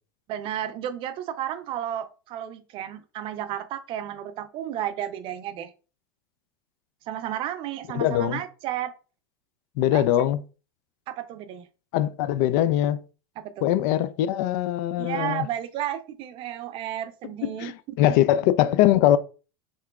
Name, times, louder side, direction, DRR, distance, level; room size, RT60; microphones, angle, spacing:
voice 1, 0.3-5.7 7.1-8.9 9.9-10.0 11.1-11.7 13.4-13.7 15.0-17.7, right 11 dB, 45° right, 0.6 m, -32 dB
voice 2, 7.9-8.4 9.8-10.4 11.9-13.0 13.6-15.5 17.6-17.7 18.0-19.2, left 12 dB, 55° left, 0.4 m, -21 dB
5.4 x 3.6 x 2.3 m
hypercardioid pair, 85°, 12 cm